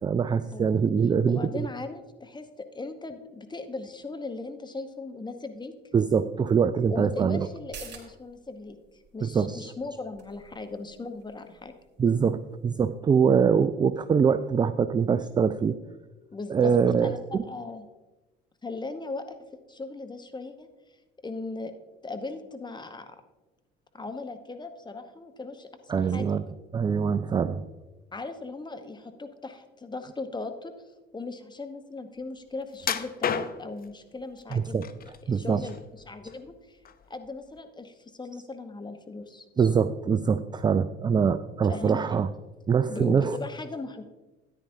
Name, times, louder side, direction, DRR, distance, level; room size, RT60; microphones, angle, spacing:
voice 1, 0.0-1.7 5.9-7.5 9.2-9.7 12.0-15.8 16.5-17.4 25.9-26.4 26.7-27.7 34.5-34.8 35.3-35.7 39.6-42.3 42.7-43.4, right 6 dB, 15° right, 12 dB, 0.3 m, -24 dB
voice 2, 1.3-5.7 6.9-8.8 9.1-11.7 16.3-16.7 17.0-17.9 18.6-19.4 19.7-20.7 21.2-21.7 22.0-23.2 23.9-26.4 28.1-30.8 31.1-34.8 35.2-36.8 37.1-39.5 41.7-42.0 42.9-44.0, left 3 dB, 15° left, 8 dB, 1.0 m, -38 dB
sound 1, 7.5-14.7 15.0-15.1, right 6 dB, 35° right, 3.0 m, -52 dB
sound 2, 32.8-33.8 34.5-35.2 35.6-36.5 36.9-37.0 37.6-37.7, left 7 dB, 30° left, 0.7 m, -31 dB
13.5 x 10.0 x 2.7 m, 1.1 s
figure-of-eight pair, 60°, 29 cm